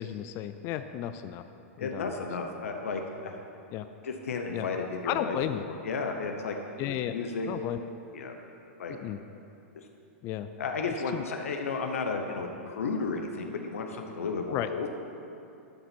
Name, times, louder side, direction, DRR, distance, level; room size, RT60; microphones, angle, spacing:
voice 1, 0.0-1.4 1.8-2.1 3.7-3.8 4.5-4.7 5.1-5.6 6.8-7.1 7.5-7.8 8.9-9.2 10.2-10.5 11.1-11.2 14.5-14.7, left 12 dB, 35° left, 10 dB, 0.4 m, -33 dB
voice 2, 1.8-3.4 4.0-5.4 5.6-6.6 6.9-7.5 8.1-8.3 8.8-8.9 9.7-9.9 10.6-14.9, left 4 dB, 80° left, 3 dB, 0.9 m, -33 dB
12.0 x 4.1 x 6.1 m, 2.7 s
hypercardioid pair, 125°, 7 cm